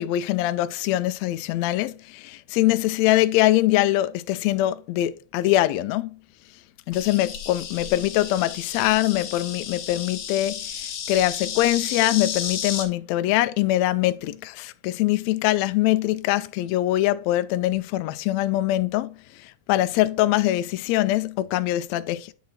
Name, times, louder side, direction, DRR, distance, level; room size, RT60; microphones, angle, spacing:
voice 1, 0.0-6.2 6.9-22.3, left 15 dB, 90° left, 1.5 m, -23 dB
Insect, 6.9-12.9, left 8 dB, 60° left, 2.0 m, -33 dB
9.5 x 3.9 x 4.3 m
omnidirectional pair, 3.7 m